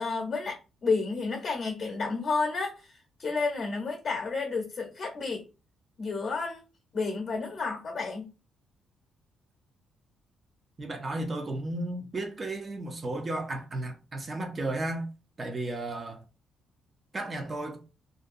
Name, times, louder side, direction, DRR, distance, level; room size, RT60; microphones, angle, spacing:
voice 1, 0.0-5.4 6.0-6.6 6.9-8.3, left 4 dB, 50° left, 0.8 m, -31 dB
voice 2, 10.8-15.1 15.4-16.2 17.1-17.8, right 2 dB, 35° right, 0.7 m, -34 dB
2.6 x 2.2 x 2.6 m
cardioid pair, 90°, 0 cm